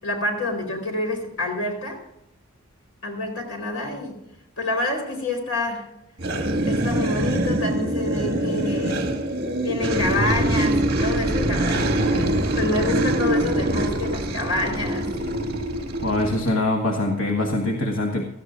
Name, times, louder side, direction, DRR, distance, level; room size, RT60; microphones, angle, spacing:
voice 1, 0.0-2.0 3.0-4.2 4.6-5.9 6.6-9.0 9.6-15.1, left 2 dB, 85° left, 3 dB, 4.1 m, -27 dB
sound 1, 6.2-16.5, right 1 dB, 50° right, 1.8 m, -24 dB
voice 2, 16.0-18.2, left 2 dB, 65° left, 2 dB, 1.4 m, -23 dB
17.0 x 14.0 x 2.5 m, 0.87 s
head